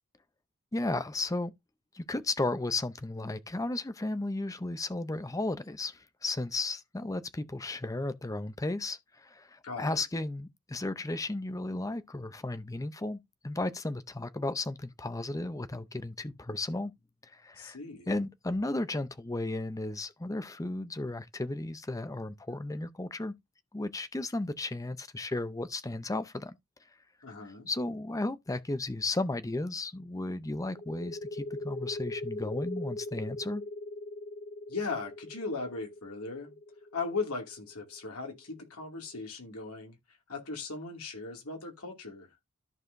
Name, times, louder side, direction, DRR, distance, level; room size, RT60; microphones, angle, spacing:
voice 1, 0.7-1.5 1.9-16.9 17.3-17.8 18.1-23.3 23.7-26.5 27.4-33.6, left 2 dB, 15° left, 0.6 m, -34 dB
voice 2, 9.6-10.0 17.5-18.1 27.2-27.7 34.7-36.6 36.9-40.0 40.3-42.3, left 4 dB, 75° left, 2.4 m, -38 dB
sound 1, 30.8-38.1, left 2 dB, 40° left, 0.9 m, -40 dB
13.5 x 4.8 x 2.6 m
head